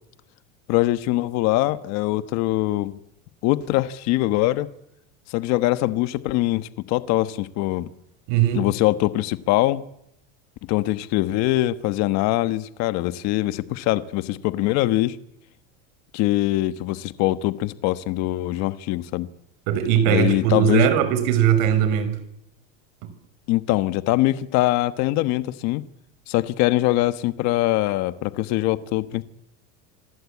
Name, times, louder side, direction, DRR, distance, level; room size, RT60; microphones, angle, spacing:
voice 1, 0.7-2.9 3.4-4.7 5.3-7.9 8.5-9.8 10.7-15.2 16.1-19.3 20.0-20.9 23.5-25.8 26.3-29.2, left 16 dB, 45° left, 13 dB, 1.3 m, -22 dB
voice 2, 8.3-8.6 19.7-22.2 23.0-23.1, right 9 dB, 60° right, 11 dB, 5.8 m, -20 dB
26.0 x 24.5 x 8.5 m, 0.79 s
cardioid pair, 175°, 38 cm